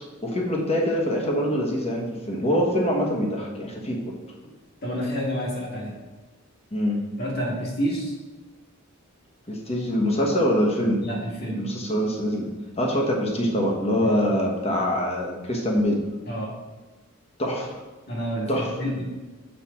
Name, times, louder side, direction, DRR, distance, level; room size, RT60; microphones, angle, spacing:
voice 1, 0.2-4.1 6.7-7.0 9.5-11.1 11.6-12.5 12.8-16.0 17.4-17.8 18.5-18.7, equal, 30° left, 0 dB, 1.2 m, -24 dB
voice 2, 4.8-5.9 7.2-8.1 11.0-11.6 14.0-14.2 16.3-16.5 18.1-19.0, equal, 45° left, -3 dB, 2.1 m, -29 dB
6.6 x 4.5 x 5.8 m, 1.2 s
head